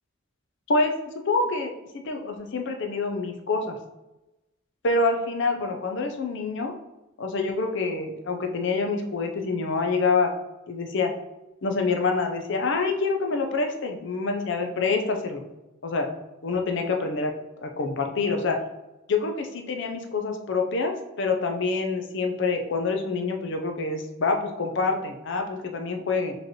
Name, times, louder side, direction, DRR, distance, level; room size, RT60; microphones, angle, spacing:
voice 1, 1.3-1.7 2.0-3.8 4.8-6.7 7.2-10.3 10.7-11.1 11.6-15.4 15.8-16.1 16.4-17.3 17.6-18.6 19.1-26.4, left 3 dB, 60° left, 4 dB, 0.6 m, -26 dB
5.0 x 3.2 x 2.9 m, 1.0 s
head